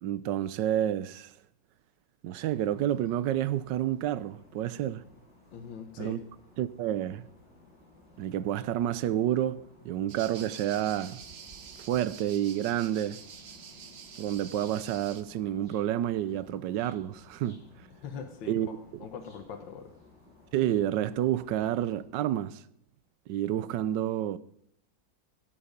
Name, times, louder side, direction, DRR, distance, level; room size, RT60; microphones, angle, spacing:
voice 1, 0.0-1.3 2.2-5.0 6.0-6.2 6.6-7.3 8.2-11.2 11.9-13.2 14.2-17.6 18.5-18.7 18.9-19.0 20.5-22.6 23.3-24.4, right 11 dB, 75° right, 1.3 m, -29 dB
sound 1, 2.5-22.0, left 2 dB, 50° left, 6.1 m, -58 dB
voice 2, 5.5-6.2 18.0-18.5 19.0-19.9, left 6 dB, 80° left, 1.8 m, -41 dB
sound 2, 10.1-15.2, right 6 dB, 45° right, 0.9 m, -47 dB
17.0 x 7.3 x 5.2 m
omnidirectional pair, 2.0 m